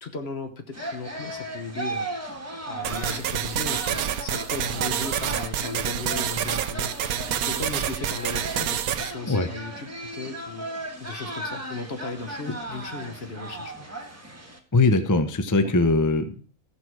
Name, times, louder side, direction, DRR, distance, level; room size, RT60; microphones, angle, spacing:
voice 1, 0.0-2.4 2.7-7.1 7.4-13.9 15.6-15.8, left 3 dB, 50° left, 7 dB, 1.3 m, -36 dB
sound 1, 0.7-14.6, right 1 dB, 10° right, 1.2 m, -36 dB
sound 2, 2.8-9.1, right 10 dB, 80° right, 1.1 m, -28 dB
voice 2, 14.7-16.4, left 3 dB, 25° left, 8 dB, 0.4 m, -21 dB
14.0 x 6.1 x 4.7 m, 0.43 s
omnidirectional pair, 1.5 m